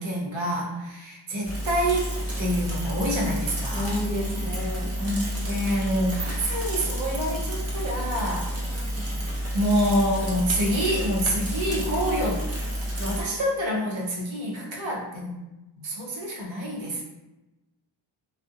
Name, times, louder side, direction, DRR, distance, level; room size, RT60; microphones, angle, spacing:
voice 1, 0.0-3.9 5.0-8.5 9.5-12.4 13.0-15.4 15.8-17.0, equal, 85° right, -2 dB, 0.7 m, -27 dB
Bicycle / Mechanisms, 1.4-13.2, equal, 35° right, 0.6 m, -30 dB
voice 2, 3.7-4.9 5.4-5.6, left 1 dB, 20° left, -4 dB, 0.5 m, -31 dB
2.4 x 2.0 x 2.6 m, 1.0 s
wide cardioid pair, 95°, 45 cm